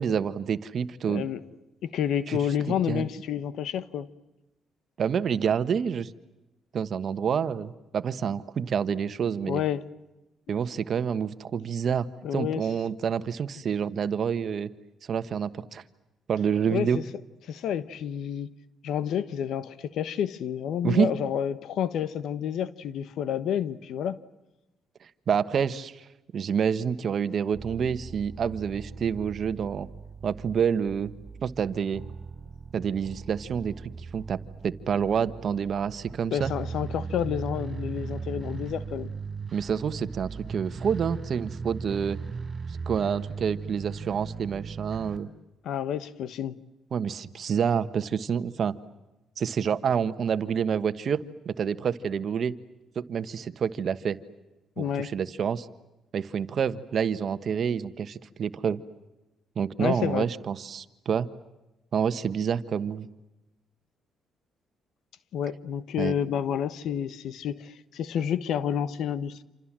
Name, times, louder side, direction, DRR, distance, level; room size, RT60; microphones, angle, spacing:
voice 1, 0.0-1.3 2.3-2.4 2.7-3.1 5.0-6.1 6.7-9.6 10.5-12.1 12.3-14.7 15.1-15.8 16.3-17.0 20.8-21.1 25.3-26.0 26.3-29.9 30.2-31.1 31.4-32.0 32.7-33.7 34.1-36.5 39.5-42.2 42.9-45.3 46.9-48.8 49.4-52.5 52.9-54.2 54.8-55.7 56.1-58.8 59.5-61.3 61.9-63.1 66.0-66.1, right 7 dB, 55° right, 1.4 m, -28 dB
voice 2, 1.1-1.4 1.8-4.1 9.5-9.9 12.2-12.6 16.7-17.0 17.5-18.5 18.8-24.2 36.3-39.1 45.6-46.6 54.8-55.1 59.8-60.3 65.3-69.4, left 9 dB, 75° left, 1.2 m, -29 dB
sound 1, 27.5-45.2, right 5 dB, 40° right, 4.1 m, -38 dB
28.0 x 27.5 x 7.6 m
cardioid pair, 90°, 0 cm